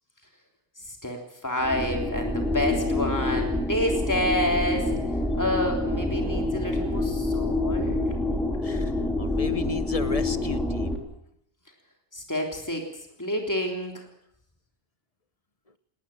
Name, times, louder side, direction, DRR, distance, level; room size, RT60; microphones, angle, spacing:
voice 1, 0.9-4.9 5.3-8.1 12.1-12.9 13.2-14.0, left 1 dB, 15° left, 2 dB, 3.5 m, -28 dB
sound 1, 1.6-11.0, left 2 dB, ahead, 3.7 m, -27 dB
voice 2, 8.6-11.1, left 4 dB, 35° left, 12 dB, 1.2 m, -34 dB
20.0 x 18.5 x 8.7 m, 0.76 s
omnidirectional pair, 1.0 m